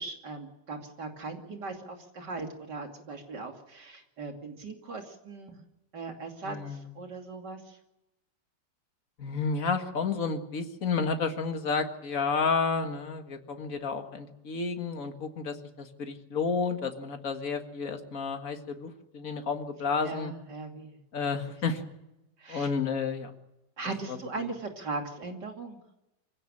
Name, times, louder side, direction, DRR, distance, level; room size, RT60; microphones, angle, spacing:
voice 1, 0.0-5.6 5.9-7.8 20.0-21.3 22.4-22.7 23.8-25.8, right 3 dB, 75° right, 3 dB, 3.3 m, -39 dB
voice 2, 6.4-6.9 9.2-20.3 21.1-21.8 22.5-23.3 24.1-24.5, left 5 dB, 50° left, 5 dB, 2.2 m, -31 dB
24.5 x 17.0 x 8.6 m, 0.95 s
omnidirectional pair, 1.9 m